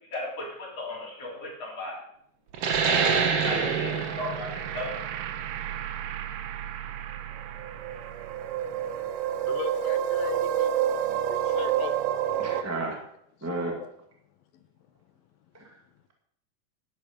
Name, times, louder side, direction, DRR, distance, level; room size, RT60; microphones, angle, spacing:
voice 1, 0.1-2.0 2.7-4.9 5.7-5.9, left 2 dB, 45° left, -4 dB, 4.4 m, -36 dB
sound 1, 2.5-7.7, right 6 dB, 55° right, 1.8 m, -28 dB
sound 2, 2.7-12.6, right 10 dB, 75° right, 2.0 m, -30 dB
voice 2, 3.4-4.1 12.4-13.0 13.4-13.7 15.5-15.8, right 2 dB, 5° right, 1 dB, 1.2 m, -33 dB
voice 3, 8.6-9.0 9.3-12.1 13.6-13.9 14.5-14.7, left 9 dB, 75° left, 9 dB, 2.7 m, -39 dB
11.5 x 11.0 x 5.3 m, 0.70 s
omnidirectional pair, 4.3 m